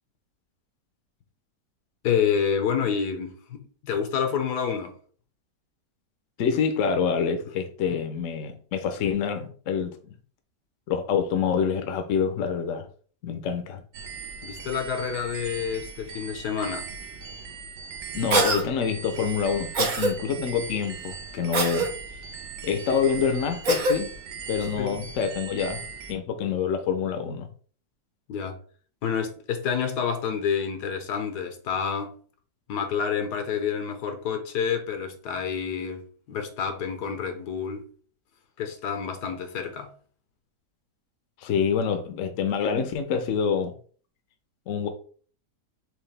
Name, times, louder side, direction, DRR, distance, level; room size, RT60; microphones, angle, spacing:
voice 1, 2.0-4.9 13.3-13.4 14.4-16.9 24.6-25.0 28.3-28.6 29.0-32.1 32.7-37.9 38.6-39.9, left 7 dB, 80° left, 1.3 m, -28 dB
voice 2, 6.4-10.1 10.9-12.9 13.2-13.8 18.1-21.9 22.6-24.1 24.5-25.8 26.1-27.5 41.4-43.7 44.7-44.9, left 6 dB, 60° left, 0.9 m, -26 dB
sound 1, 13.9-26.1, right 5 dB, 85° right, 1.2 m, -39 dB
Cough, 18.3-18.6 19.7-20.1 21.5-21.9 23.6-24.0, right 3 dB, 50° right, 0.6 m, -23 dB
4.8 x 3.0 x 3.3 m
omnidirectional pair, 1.8 m